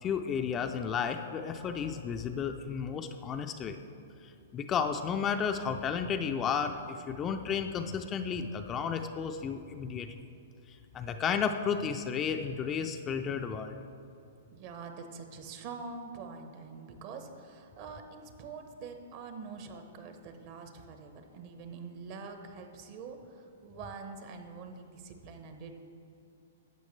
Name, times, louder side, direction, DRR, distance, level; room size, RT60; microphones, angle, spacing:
voice 1, 0.0-3.8 4.2-10.1 10.9-13.7, left 6 dB, 25° left, 6 dB, 0.4 m, -33 dB
voice 2, 14.5-25.7, right 4 dB, 45° right, 6 dB, 1.1 m, -45 dB
12.0 x 8.2 x 3.2 m, 2.6 s
hypercardioid pair, 125°, 0 cm